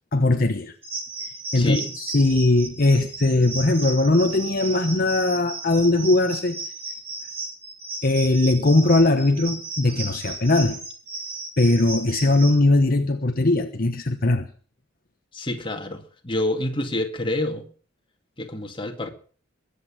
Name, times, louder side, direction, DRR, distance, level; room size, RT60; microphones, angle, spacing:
voice 1, 0.1-0.8 1.5-6.6 8.0-10.8 11.6-14.5, left 2 dB, 50° left, 1.2 m, -20 dB
sound 1, 0.8-12.6, right 2 dB, 30° right, 5.4 m, -35 dB
voice 2, 1.5-1.9 15.3-17.6 18.4-19.1, left 1 dB, 25° left, 2.3 m, -27 dB
22.0 x 8.5 x 7.4 m
head